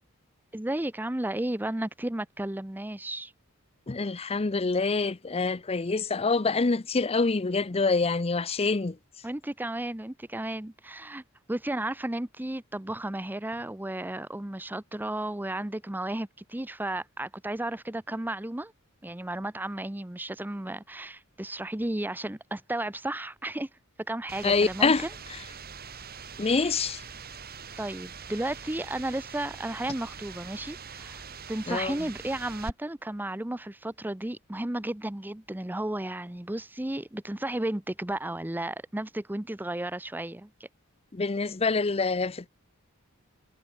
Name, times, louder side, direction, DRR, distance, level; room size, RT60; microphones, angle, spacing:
voice 1, 0.5-3.3 9.2-11.2 11.5-18.7 19.0-23.7 24.1-25.1 27.8-40.7, right 1 dB, 10° right, 0.7 m, -33 dB
voice 2, 3.9-9.0 24.4-25.0 26.4-27.0 31.7-31.9 41.1-42.5, left 4 dB, 30° left, 0.6 m, -26 dB
sound 1, 24.3-32.7, right 5 dB, 45° right, 4.1 m, -43 dB
head